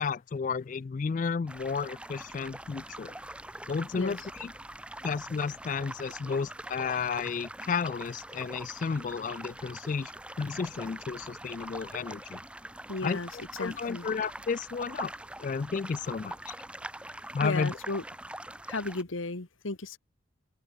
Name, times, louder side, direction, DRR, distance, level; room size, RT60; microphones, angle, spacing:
voice 1, 0.0-3.1 3.7-4.5 5.0-10.1 10.4-12.4 13.0-13.2 13.6-15.1 15.4-16.6 17.3-17.7, left 5 dB, 40° left, 0.3 m, -32 dB
sound 1, 1.5-19.0, right 1 dB, 5° right, 1.4 m, -43 dB
voice 2, 12.9-13.3 13.6-14.1 17.4-18.0 18.7-20.0, left 3 dB, 80° left, 1.6 m, -34 dB
open air
head